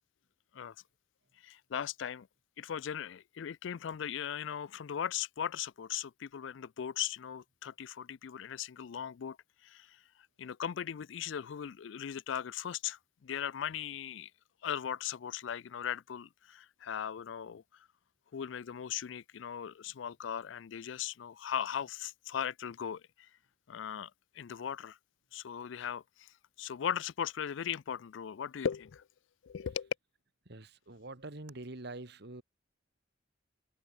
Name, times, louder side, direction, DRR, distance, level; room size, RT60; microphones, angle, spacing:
voice 1, 1.4-2.3 2.6-9.4 9.6-10.0 10.4-14.3 14.6-17.6 18.3-23.3 23.7-25.0 25.3-29.0 29.4-29.9, left 8 dB, 70° left, 0.4 m, -38 dB
voice 2, 30.5-32.4, right 2 dB, 60° right, 1.9 m, -45 dB
head